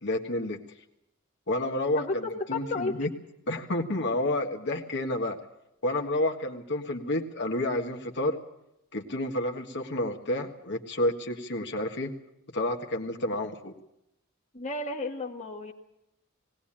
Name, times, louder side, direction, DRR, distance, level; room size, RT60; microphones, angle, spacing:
voice 1, 0.0-0.6 1.5-2.2 2.5-3.1 3.5-5.4 5.8-8.4 8.9-12.1 12.5-13.7, left 1 dB, 55° left, 4 dB, 1.6 m, -30 dB
voice 2, 2.0-2.9 14.5-15.7, left 3 dB, 35° left, 2 dB, 1.6 m, -32 dB
19.5 x 18.0 x 8.8 m, 0.82 s
head